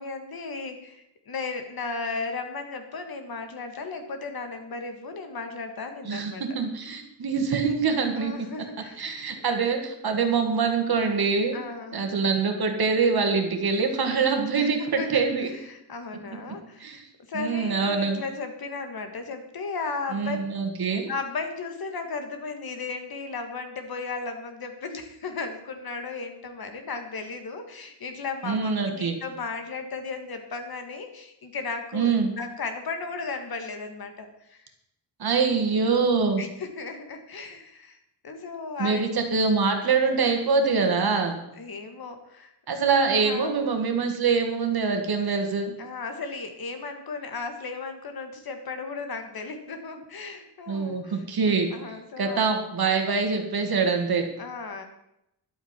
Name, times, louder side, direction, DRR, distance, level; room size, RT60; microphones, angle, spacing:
voice 1, 0.0-6.4 8.1-9.2 11.5-12.0 14.6-14.7 15.0-15.2 15.6-17.0 17.3-20.4 20.8-34.7 36.4-38.0 38.2-39.0 41.6-42.5 43.2-43.6 45.8-52.5 54.4-54.9, left 4 dB, 55° left, 6 dB, 1.8 m, -35 dB
voice 2, 6.1-8.3 9.0-11.6 11.9-15.5 16.8-17.0 17.3-18.2 20.1-21.1 28.4-29.2 31.9-32.3 35.2-36.4 38.8-41.4 42.7-45.7 50.7-51.7 52.2-54.3, right 5 dB, 55° right, 4 dB, 2.0 m, -24 dB
13.0 x 11.5 x 4.4 m, 0.81 s
wide cardioid pair, 175°, 44 cm